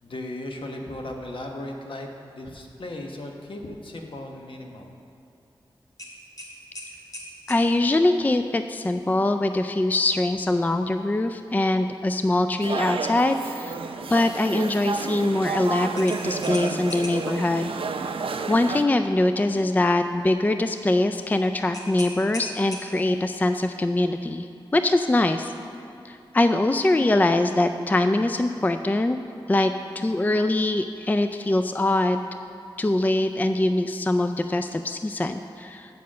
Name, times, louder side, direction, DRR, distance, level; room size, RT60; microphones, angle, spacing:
voice 1, 0.0-4.9, left 1 dB, 65° left, 2 dB, 1.1 m, -36 dB
sound 1, 6.0-7.7 10.3-10.5 10.9-11.0 16.0-17.3 21.7-23.2, left 1 dB, 40° left, 2.0 m, -38 dB
voice 2, 7.5-13.8 14.1-17.7 18.5-24.5 24.7-25.5 26.0-29.2 29.5-32.2 32.8-35.9, left 2 dB, 20° left, 8 dB, 0.3 m, -23 dB
sound 2, 12.6-18.8, right 5 dB, 75° right, 0.4 m, -31 dB
7.5 x 5.6 x 7.5 m, 2.8 s
cardioid pair, 55°, 9 cm